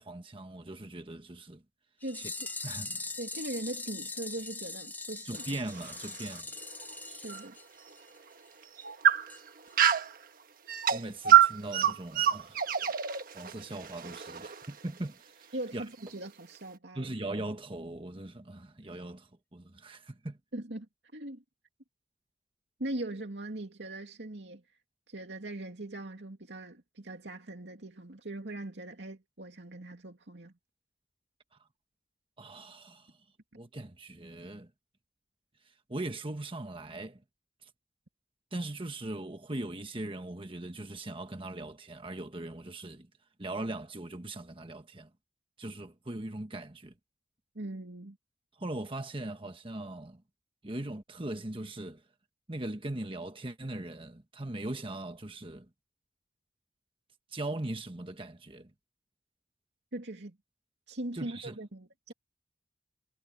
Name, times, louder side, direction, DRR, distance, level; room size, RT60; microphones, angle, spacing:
voice 1, 0.0-1.6 2.2-2.3 2.6-3.0 5.2-6.5 10.9-12.8 13.3-15.3 15.7-15.8 16.9-20.4 32.4-33.1 33.6-34.7 35.9-37.2 38.5-43.1 43.4-45.1 45.6-46.9 48.6-50.2 50.6-52.0 52.5-55.6 57.3-58.7 61.1-61.6, right 1 dB, 30° right, 1.3 m, -40 dB
sound 1, 2.0-8.2 8.5-8.6 8.8-8.9 9.3-9.4 9.7-9.8, left 3 dB, 10° left, 1.0 m, -41 dB
voice 2, 2.0-2.5 3.2-5.5 7.1-7.6 15.5-17.1 20.5-20.9 21.1-21.4 22.8-24.6 25.1-30.5 47.5-48.2 59.9-60.4 60.9-62.1, right 1 dB, 85° right, 2.5 m, -40 dB
sound 2, 5.4-7.5 7.9-8.0 8.6-10.2 10.7-15.0, right 10 dB, 55° right, 1.3 m, -26 dB
head